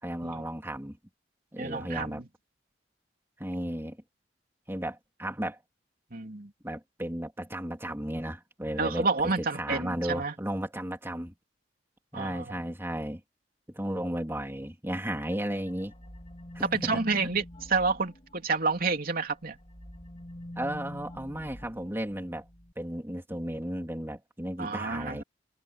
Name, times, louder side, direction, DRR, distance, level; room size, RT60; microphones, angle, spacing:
voice 1, 0.0-1.0 1.5-2.2 3.4-4.0 4.7-5.6 6.6-11.3 12.1-13.2 13.7-15.9 16.5-17.0 20.5-22.4 22.7-25.2, right 1 dB, 15° right, 3.3 m, -34 dB
voice 2, 1.6-2.3 6.1-6.5 8.8-10.3 12.1-12.6 16.7-19.6 24.6-25.2, right 4 dB, 50° right, 3.2 m, -29 dB
sound 1, 15.1-19.0 19.3-22.7, left 1 dB, 35° left, 4.0 m, -45 dB
head